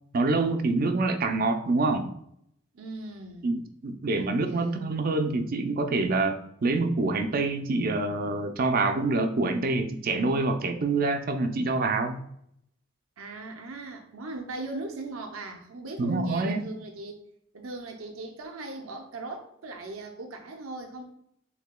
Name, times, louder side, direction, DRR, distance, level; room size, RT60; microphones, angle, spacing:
voice 1, 0.1-2.1 3.4-12.2 16.0-16.7, right 3 dB, 45° right, 7 dB, 0.4 m, -26 dB
voice 2, 2.7-3.5 4.1-4.9 13.2-17.2 17.5-21.0, right 2 dB, 90° right, 4 dB, 0.7 m, -39 dB
6.6 x 2.8 x 2.2 m, 0.72 s
head